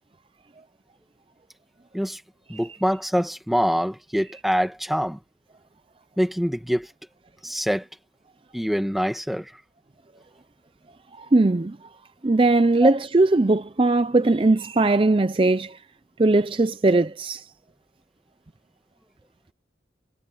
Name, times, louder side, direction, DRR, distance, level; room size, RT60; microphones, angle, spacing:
voice 1, 2.5-5.2 6.2-6.9 7.4-7.9 8.5-9.5 12.8-12.9, equal, ahead, 1.9 m, -25 dB
voice 2, 11.2-11.8 12.2-15.8 16.2-17.5, right 2 dB, 30° right, 0.5 m, -19 dB
head